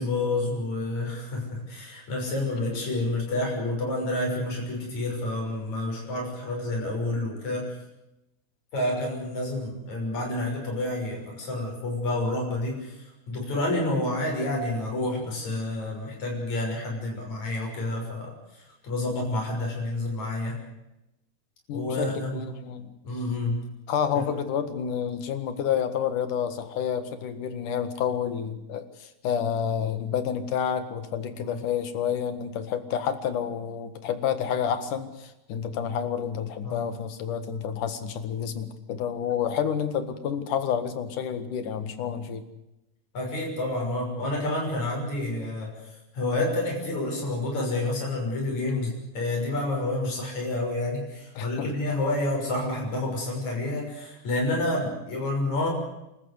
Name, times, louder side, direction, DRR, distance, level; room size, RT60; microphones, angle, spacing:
voice 1, 0.0-7.8 8.7-12.9 13.3-20.6 21.7-22.3 23.0-23.6 24.2-24.3 31.4-31.6 36.6-36.9 43.1-45.7 46.1-55.7, left 2 dB, 65° left, 0 dB, 7.8 m, -29 dB
voice 2, 21.7-22.9 23.9-42.4 51.4-51.7, left 8 dB, 85° left, 11 dB, 3.3 m, -29 dB
28.0 x 13.5 x 9.7 m, 0.92 s
omnidirectional pair, 3.5 m